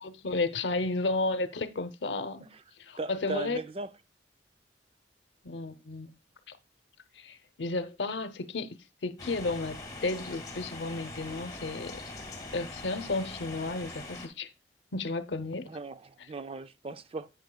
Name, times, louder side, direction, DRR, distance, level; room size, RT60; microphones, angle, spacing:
voice 1, 0.0-2.5 2.8-3.6 5.4-6.1 6.5-6.6 7.2-12.0 12.5-14.5 14.9-15.7, left 3 dB, 75° left, 0.7 m, -33 dB
voice 2, 3.0-3.9 15.6-17.3, right 2 dB, 30° right, 0.4 m, -38 dB
sound 1, 9.2-14.3, left 2 dB, 20° left, 1.5 m, -42 dB
11.0 x 8.1 x 2.3 m
head